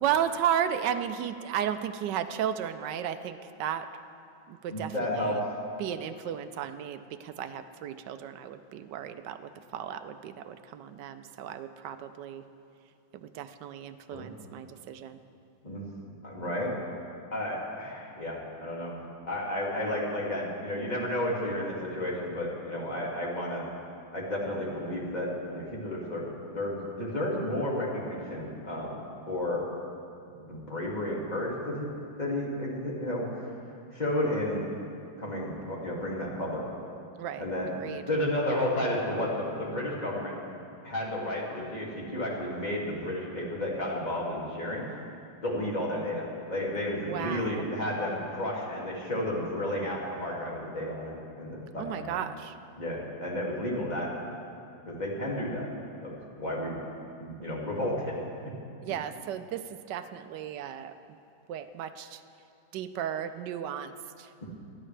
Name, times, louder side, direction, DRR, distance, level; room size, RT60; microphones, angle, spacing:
voice 1, 0.0-3.9 4.5-5.4 5.8-12.4 13.1-15.2 37.2-37.4 37.8-38.0 47.1-47.6 51.8-52.5 58.8-60.9 61.5-62.2 62.7-63.9 64.2-64.3, right 9 dB, 75° right, 10 dB, 1.2 m, -34 dB
voice 2, 4.7-5.4 14.1-14.3 15.6-15.9 16.2-16.7 17.3-18.9 19.3-23.7 24.1-29.0 29.3-29.6 30.4-31.9 32.2-33.3 33.9-34.6 35.2-36.6 37.4-37.7 38.1-40.3 40.8-44.9 45.4-52.2 52.8-54.1 54.8-55.7 56.0-56.8 57.2-58.2, left 1 dB, 20° left, -4 dB, 2.3 m, -32 dB
20.0 x 13.5 x 3.3 m, 2.6 s
omnidirectional pair, 2.1 m